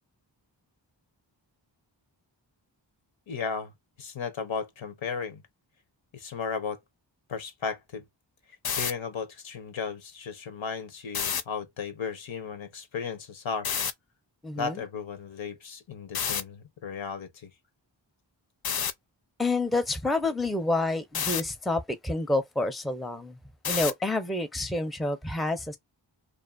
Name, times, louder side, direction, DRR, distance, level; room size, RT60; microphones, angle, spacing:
voice 1, 3.3-3.7 4.0-5.4 6.1-6.8 7.3-8.0 8.7-13.7 14.6-17.5, left 6 dB, 85° left, 0.8 m, -35 dB
sound 1, 8.5-8.9 11.1-11.4 13.6-13.9 16.1-16.4 18.6-18.9 21.1-21.4 23.6-24.0, left 7 dB, 55° left, 0.5 m, -28 dB
voice 2, 14.4-14.8 19.4-23.4 23.7-25.8, left 2 dB, ahead, 0.5 m, -28 dB
2.6 x 2.4 x 2.3 m
wide cardioid pair, 65°, 45 cm